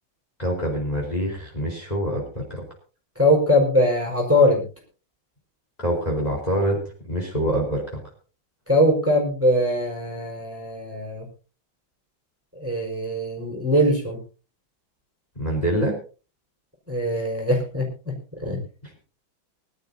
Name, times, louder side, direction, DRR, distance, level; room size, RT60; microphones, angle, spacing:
voice 1, 0.4-2.6 5.8-8.0 15.4-16.0, right 1 dB, 15° left, -1 dB, 4.5 m, -25 dB
voice 2, 3.2-4.6 8.7-11.3 12.5-14.2 16.9-18.2 18.4-18.6, left 1 dB, 5° right, 0 dB, 4.8 m, -21 dB
24.0 x 12.5 x 2.8 m, 0.35 s
omnidirectional pair, 2.3 m